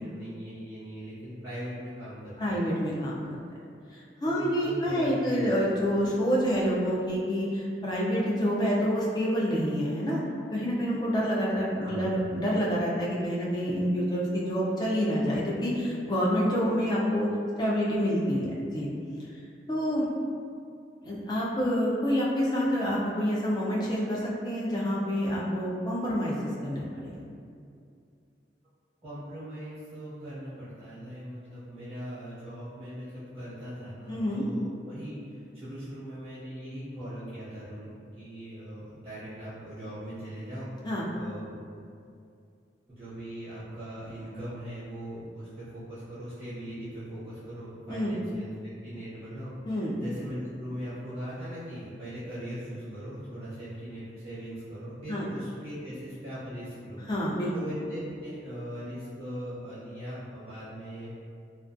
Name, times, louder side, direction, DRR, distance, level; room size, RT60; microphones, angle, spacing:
voice 1, 0.0-2.6 4.2-5.5 11.8-12.1 29.0-41.5 42.9-48.5 48.8-49.5 50.0-57.0 57.5-61.1, equal, 15° right, -13 dB, 0.6 m, -40 dB
voice 2, 2.4-3.2 3.9-10.2 10.5-17.3 17.6-18.9 19.7-20.0 21.0-26.3 26.6-27.2 34.1-34.4 40.8-41.1 47.9-48.1 49.7-49.9 55.1-55.3 57.1-57.5, equal, 20° left, -5 dB, 0.3 m, -27 dB
2.4 x 2.2 x 2.4 m, 2.4 s
head